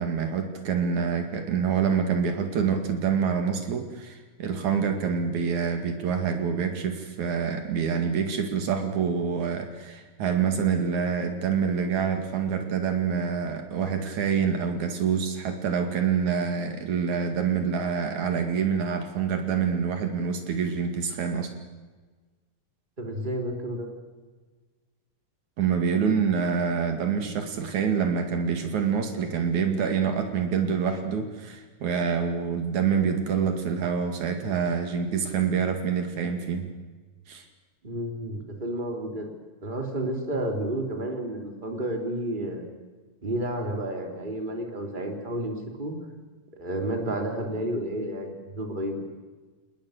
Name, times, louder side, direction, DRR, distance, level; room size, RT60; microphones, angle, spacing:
voice 1, 0.0-21.5 25.6-36.7 37.3-37.4, right 6 dB, 75° right, 6 dB, 3.5 m, -26 dB
voice 2, 23.0-23.9 37.8-39.3 39.6-42.6 43.2-46.0 46.5-49.0, right 1 dB, 15° right, 3 dB, 3.5 m, -31 dB
29.5 x 19.5 x 6.6 m, 1.3 s
omnidirectional pair, 3.4 m